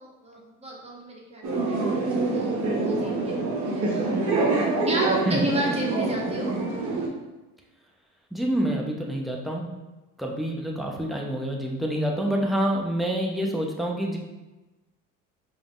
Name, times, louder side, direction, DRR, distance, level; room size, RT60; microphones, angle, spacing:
voice 1, 0.0-2.5 2.8-4.1 4.4-6.6, right 1 dB, 15° right, -3 dB, 1.3 m, -32 dB
sound 1, 1.4-7.1, right 3 dB, 50° right, 1.2 m, -26 dB
voice 2, 8.3-9.7 10.2-14.2, equal, ahead, -1 dB, 0.7 m, -27 dB
4.8 x 3.7 x 2.5 m, 1.1 s
supercardioid pair, 80°, 37 cm